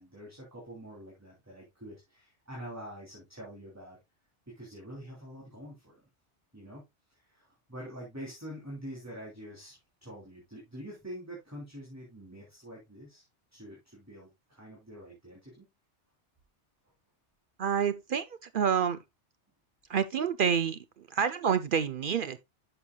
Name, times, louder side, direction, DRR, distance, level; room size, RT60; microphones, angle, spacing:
voice 1, 0.0-4.0 4.5-5.9 6.5-6.8 7.1-13.2 13.5-15.7, equal, 15° right, 3.2 m, -46 dB
voice 2, 17.6-19.0 19.9-22.4, right 7 dB, 55° right, 0.6 m, -28 dB
11.0 x 7.0 x 2.3 m
omnidirectional pair, 1.2 m